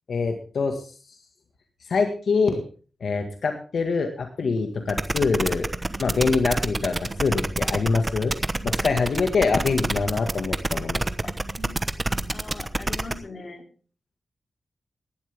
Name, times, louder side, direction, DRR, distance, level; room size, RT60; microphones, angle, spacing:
voice 1, 0.1-0.9 1.9-2.6 3.0-5.7 6.0-8.3 8.6-11.0, left 4 dB, 70° left, 5 dB, 1.7 m, -24 dB
sound 1, 4.4-12.4, right 4 dB, 70° right, 5.1 m, -47 dB
sound 2, 4.9-13.1, right 2 dB, 20° right, 1.1 m, -27 dB
voice 2, 12.3-13.6, left 3 dB, 45° left, 5 dB, 3.1 m, -40 dB
18.0 x 12.0 x 3.6 m, 0.39 s
wide cardioid pair, 105°, 0 cm